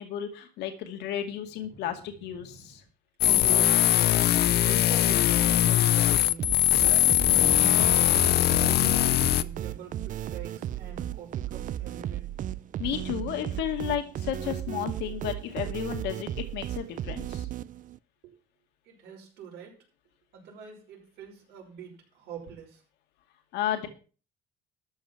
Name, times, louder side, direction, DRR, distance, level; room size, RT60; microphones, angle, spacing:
voice 1, 0.0-2.8 12.8-17.5 23.5-23.9, left 10 dB, 85° left, 6 dB, 2.2 m, -33 dB
voice 2, 1.7-2.8 3.2-3.9 4.4-6.5 6.8-12.3 18.2-18.3 18.9-19.8 20.3-22.8, right 4 dB, 85° right, 0 dB, 5.7 m, -43 dB
sound 1, 3.2-9.4, left 13 dB, 70° left, 0.7 m, -21 dB
sound 2, 6.4-18.0, right 11 dB, 50° right, 0.5 m, -35 dB
13.5 x 5.3 x 7.5 m, 0.37 s
cardioid pair, 110°, 17 cm